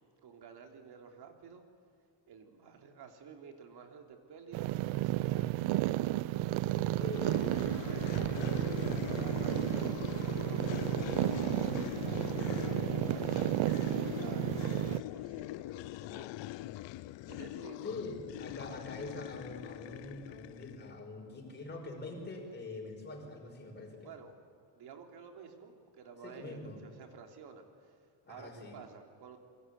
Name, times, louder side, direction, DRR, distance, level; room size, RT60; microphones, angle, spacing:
voice 1, 0.0-1.7 2.3-5.6 7.8-11.7 12.3-16.4 17.3-17.9 24.0-24.3 24.7-29.4, right 6 dB, 60° right, 4 dB, 3.4 m, -52 dB
sound 1, 4.5-15.0, right 15 dB, 90° right, 0.8 m, -32 dB
voice 2, 6.5-7.3 7.7-8.2 17.8-24.1 26.2-26.8 28.3-28.8, left 3 dB, 20° left, 1 dB, 5.7 m, -44 dB
sound 2, 7.1-21.0, left 16 dB, 75° left, 0.7 m, -41 dB
27.5 x 23.5 x 8.3 m, 2.4 s
cardioid pair, 170°, 45 cm